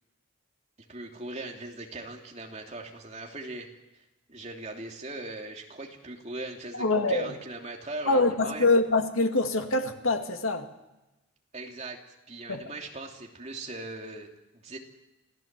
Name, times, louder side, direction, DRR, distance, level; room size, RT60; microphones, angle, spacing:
voice 1, 0.9-3.7 3.9-8.7 11.5-14.8, right 2 dB, 30° right, 1 dB, 2.8 m, -40 dB
voice 2, 6.7-7.3 8.1-10.7 12.5-12.6, left 2 dB, 80° left, 5 dB, 2.2 m, -25 dB
27.5 x 16.5 x 7.5 m, 1.0 s
head